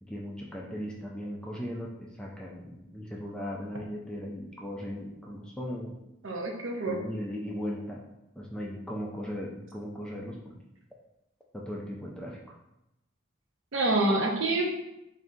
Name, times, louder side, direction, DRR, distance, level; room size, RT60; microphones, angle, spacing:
voice 1, 0.0-6.0 6.9-8.0 8.4-10.5 11.5-12.4, equal, 5° left, -2 dB, 0.3 m, -37 dB
voice 2, 6.2-7.0 13.7-14.8, right 2 dB, 65° right, 1 dB, 0.7 m, -27 dB
3.2 x 2.6 x 3.7 m, 0.88 s
head